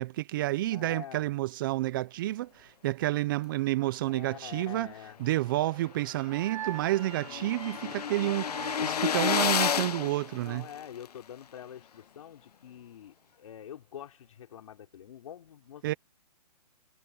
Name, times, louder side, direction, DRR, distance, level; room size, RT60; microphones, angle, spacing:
voice 1, 0.0-4.9 5.2-10.7 15.8-15.9, right 16 dB, 30° right, 0.8 m, -30 dB
voice 2, 0.7-1.3 4.1-5.2 7.1-8.0 10.4-16.0, left 10 dB, 55° left, 4.6 m, -46 dB
sound 1, 5.5-5.6 5.9-6.0 6.2-11.1, left 8 dB, 70° left, 1.0 m, -31 dB
sound 2, 5.7-9.9, right 11 dB, 55° right, 3.8 m, -45 dB
hypercardioid pair, 150°, 21 cm